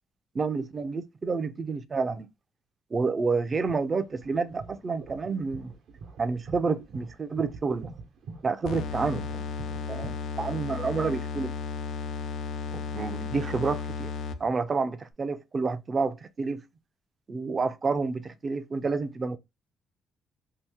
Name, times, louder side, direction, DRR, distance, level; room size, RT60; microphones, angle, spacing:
voice 1, 0.4-2.3 2.9-5.7 6.2-7.9 8.4-11.5 12.7-14.1 14.4-16.6 17.3-19.4, right 4 dB, 35° right, 0.5 m, -29 dB
sound 1, 3.6-10.1, right 4 dB, 75° right, 1.0 m, -44 dB
sound 2, 8.6-14.6, left 5 dB, 75° left, 0.4 m, -34 dB
2.9 x 2.7 x 3.4 m
cardioid pair, 90°, 0 cm